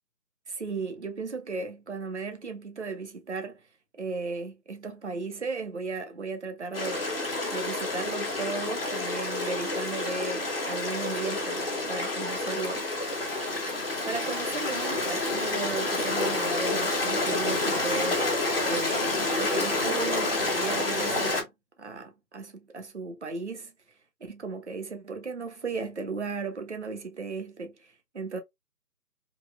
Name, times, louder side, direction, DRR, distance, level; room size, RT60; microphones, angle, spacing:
voice 1, 0.5-3.6 4.0-7.1 7.5-12.9 13.4-13.5 14.0-18.2 18.6-21.5 21.8-23.7 24.2-28.4, right 4 dB, 45° right, 0.4 m, -35 dB
Stream, 6.7-21.4, left 2 dB, 35° left, 0.7 m, -29 dB
3.0 x 2.1 x 2.2 m
figure-of-eight pair, 160°, 50 cm